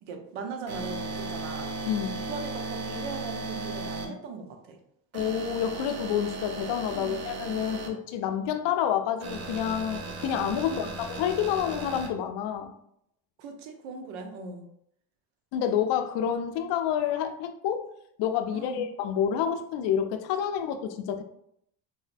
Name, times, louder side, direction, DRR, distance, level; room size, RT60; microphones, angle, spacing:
voice 1, 0.0-1.8 2.3-4.8 6.9-7.3 10.6-11.0 13.4-14.6 18.5-18.8, right 4 dB, 80° right, 5 dB, 0.7 m, -39 dB
sound 1, 0.7-4.1 5.1-7.9 9.2-12.1, right 3 dB, 35° right, 0.7 m, -36 dB
voice 2, 1.9-2.3 5.1-12.7 15.5-17.9 18.2-21.2, left 9 dB, 65° left, 7 dB, 0.5 m, -28 dB
4.0 x 2.1 x 2.5 m, 0.74 s
supercardioid pair, 80°, 46 cm